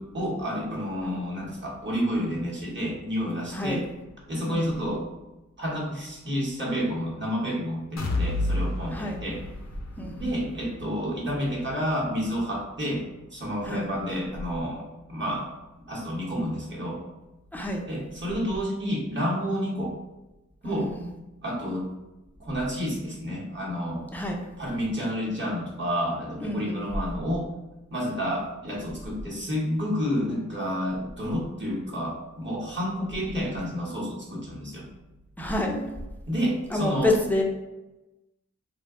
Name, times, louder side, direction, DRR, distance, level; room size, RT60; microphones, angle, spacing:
voice 1, 0.0-3.8 4.3-5.1 5.6-9.4 10.1-13.0 13.3-15.5 15.9-17.0 17.9-20.0 20.6-20.9 21.4-21.9 22.4-24.1 24.6-27.5 27.9-34.9 36.3-37.1, equal, 35° right, -5 dB, 1.0 m, -30 dB
voice 2, 3.5-3.9 4.5-4.6 8.9-9.2 10.0-10.3 13.6-13.9 17.5-17.8 20.6-21.1 24.1-24.4 26.4-26.8 35.4-35.9 36.7-37.4, left 1 dB, 5° left, 1 dB, 0.5 m, -28 dB
sound 1, 8.0-15.8 16.2-16.3 16.7-16.8, left 2 dB, 60° left, 0.5 m, -34 dB
2.6 x 2.1 x 3.6 m, 1.0 s
wide cardioid pair, 55°, 31 cm